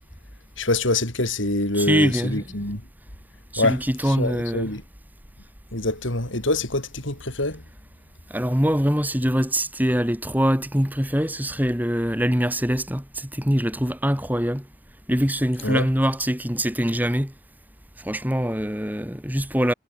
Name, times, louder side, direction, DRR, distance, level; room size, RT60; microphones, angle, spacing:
voice 1, 0.6-2.8 3.6-4.8 5.7-7.6 15.6-15.9, left 2 dB, 75° left, 6.4 m, -25 dB
voice 2, 1.7-2.4 3.5-4.7 8.3-14.6 15.1-17.3 18.0-19.7, equal, 10° right, 5.3 m, -23 dB
head